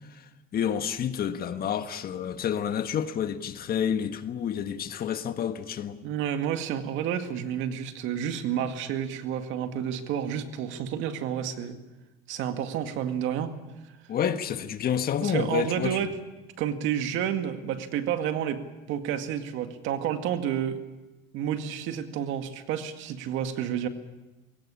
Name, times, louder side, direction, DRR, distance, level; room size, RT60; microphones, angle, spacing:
voice 1, 0.1-6.0 14.1-16.0, left 8 dB, 50° left, 1.6 m, -29 dB
voice 2, 6.0-11.8 12.3-13.5 13.9-14.0 15.2-16.2 16.6-18.6 18.9-20.8 21.3-23.9, right 9 dB, 75° right, 2.1 m, -30 dB
21.5 x 18.0 x 8.5 m
cardioid pair, 105°, 20 cm